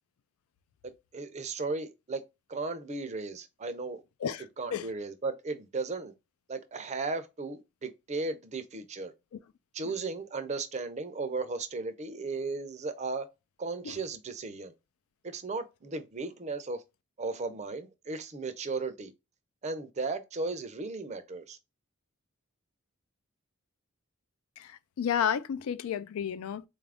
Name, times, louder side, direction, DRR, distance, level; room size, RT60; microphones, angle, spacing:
voice 1, 0.8-2.2 2.5-4.0 4.6-6.1 6.5-9.1 9.7-13.3 13.6-14.7 15.2-16.8 17.2-19.1 19.6-21.6, right 3 dB, 35° right, 0.5 m, -35 dB
voice 2, 24.6-26.6, left 8 dB, 85° left, 0.3 m, -31 dB
3.9 x 2.4 x 3.4 m
head